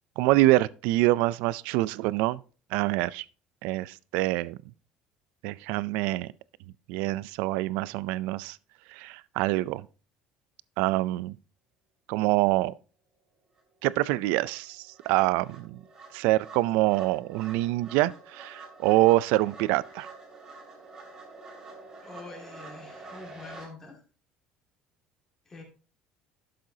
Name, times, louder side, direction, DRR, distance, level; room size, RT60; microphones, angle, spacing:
voice 1, 0.2-2.4 2.7-3.2 3.6-4.6 5.4-6.3 6.9-8.6 8.9-9.9 10.8-11.3 12.1-12.7 13.8-15.8 16.1-20.1, right 18 dB, 80° right, 0.4 m, -25 dB
sound 1, 13.6-13.7 14.0-23.7, right 3 dB, 25° right, 2.7 m, -48 dB
voice 2, 22.0-24.0 25.5-25.6, left 3 dB, 20° left, 2.1 m, -45 dB
11.5 x 7.5 x 2.7 m
cardioid pair, 170°, 2 cm